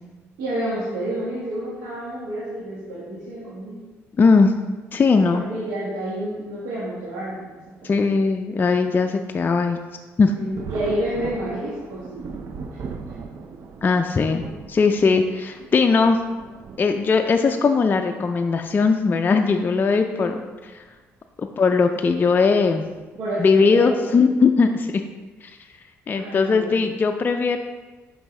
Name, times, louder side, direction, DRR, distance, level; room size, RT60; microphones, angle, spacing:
voice 1, 0.4-3.8 5.3-7.5 7.8-8.1 10.4-12.8 20.1-20.3 23.2-24.2 26.1-26.8, right 1 dB, 90° right, -9 dB, 1.4 m, -29 dB
voice 2, 4.2-4.5 4.9-5.4 7.8-9.8 10.2-10.3 13.8-14.4 14.7-16.2 16.8-20.3 20.7-20.8 21.4-22.8 23.4-25.0 25.4-25.6 26.1-27.6, left 4 dB, 35° left, 5 dB, 0.4 m, -19 dB
Thunder, 10.5-17.6 18.6-18.7 20.1-20.4 20.8-20.9 22.8-23.0 23.7-24.1, right 5 dB, 60° right, 0.5 m, -39 dB
5.9 x 5.4 x 3.2 m, 1.3 s
supercardioid pair, 70°, 6 cm